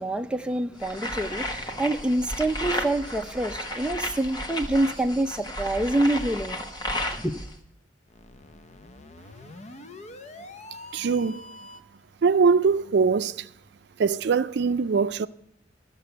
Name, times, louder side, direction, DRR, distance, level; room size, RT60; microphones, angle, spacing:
voice 1, 0.0-6.6 7.2-7.3, right 1 dB, 5° right, 0.5 m, -26 dB
sound 1, 0.8-7.5, left 1 dB, 20° left, 1.1 m, -33 dB
sound 2, 8.1-12.0, left 2 dB, 40° left, 0.6 m, -45 dB
voice 2, 10.9-11.4 12.2-13.5 14.0-15.3, right 5 dB, 65° right, 0.4 m, -22 dB
13.5 x 6.7 x 7.9 m
head